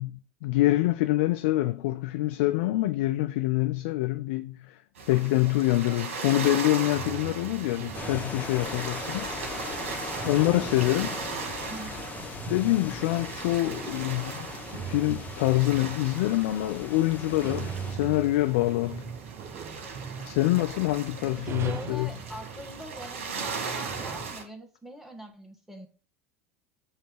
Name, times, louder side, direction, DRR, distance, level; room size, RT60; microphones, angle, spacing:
voice 1, 0.0-4.8 5.1-9.3 10.2-11.2 12.5-14.5 14.7-19.0 20.2-22.1, left 17 dB, 60° left, 0.4 m, -26 dB
sound 1, 5.0-24.4, right 4 dB, 70° right, 1.4 m, -38 dB
sound 2, 6.5-24.3, right 7 dB, 40° right, 0.6 m, -41 dB
sound 3, 7.9-17.9, left 4 dB, 20° left, 1.0 m, -40 dB
voice 2, 11.7-12.1 21.4-25.9, equal, 5° right, 1.5 m, -43 dB
7.1 x 3.0 x 5.0 m
figure-of-eight pair, 75°, 7 cm